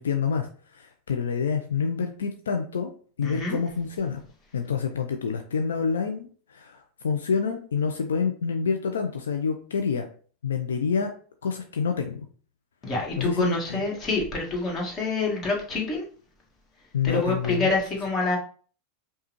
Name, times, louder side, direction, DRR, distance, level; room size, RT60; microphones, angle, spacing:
voice 1, 0.0-2.9 3.2-4.2 4.5-10.1 10.4-11.1 11.4-12.3 13.2-13.8 16.9-17.7, left 6 dB, 75° left, 4 dB, 0.4 m, -27 dB
voice 2, 3.2-3.6 12.8-16.1 17.0-18.4, left 3 dB, 30° left, -1 dB, 1.6 m, -27 dB
5.5 x 2.3 x 3.0 m, 0.44 s
figure-of-eight pair, 85°, 0 cm